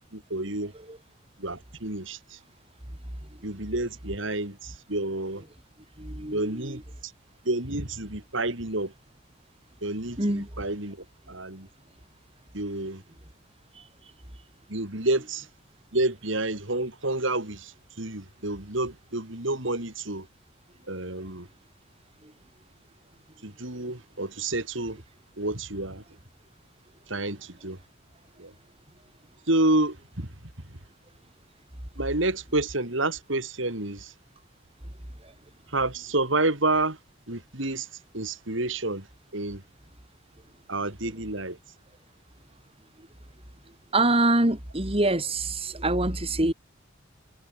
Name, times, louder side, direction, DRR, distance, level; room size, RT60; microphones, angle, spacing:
voice 1, 0.1-0.7 1.4-2.4 3.4-5.4 6.3-7.1 7.4-8.9 9.8-11.7 12.5-13.0 14.7-15.5 15.9-20.3 20.9-21.5 23.4-25.0 25.4-26.0 27.1-27.8 28.4-28.5 29.5-30.3 32.0-34.1 35.7-37.0 37.3-37.9 38.1-39.1 39.3-39.6 40.7-41.6, right 2 dB, 65° right, 4.1 m, -29 dB
voice 2, 6.0-6.8 10.2-10.5 13.7-13.8 22.2-22.3 35.2-35.3 43.9-46.5, right 2 dB, 30° right, 3.0 m, -25 dB
head